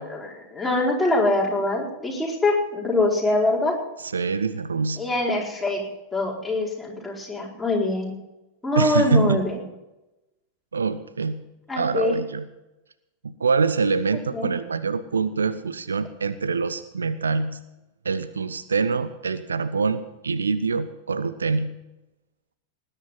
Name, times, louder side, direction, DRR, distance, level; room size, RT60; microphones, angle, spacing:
voice 1, 0.0-3.7 5.0-5.8 6.1-8.1 8.6-9.5 11.7-12.2 14.3-14.5, left 2 dB, 5° left, -3 dB, 4.5 m, -24 dB
voice 2, 4.0-5.0 8.8-9.4 10.7-11.4 11.8-12.4 13.2-17.6 18.0-21.7, right 4 dB, 75° right, 13 dB, 0.7 m, -25 dB
19.5 x 10.5 x 5.6 m, 0.99 s
figure-of-eight pair, 90°, 0 cm